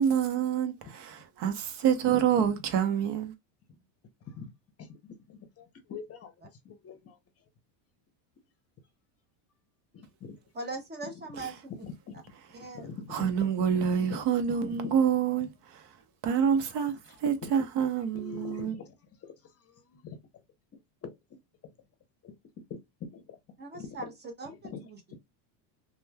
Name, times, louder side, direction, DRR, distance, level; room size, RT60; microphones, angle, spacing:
voice 1, 0.0-3.3 13.1-15.8 16.2-16.9 17.2-18.7, right 8 dB, 55° right, 0.9 m, -27 dB
voice 2, 4.8-7.2 9.9-10.4 11.4-12.3 12.7-13.5 13.9-14.2 14.7-15.0 15.4-15.5 17.1-17.5 18.1-18.9 19.2-19.3 19.6-20.2 21.0-21.4 22.2-22.3 22.7-23.4 23.7-24.1 24.4-24.8, left 6 dB, 30° left, 0.7 m, -44 dB
voice 3, 10.5-11.5 12.5-12.9 23.6-24.0 24.4-25.2, right 3 dB, 20° right, 0.7 m, -40 dB
3.0 x 2.2 x 2.2 m
supercardioid pair, 115°, 49 cm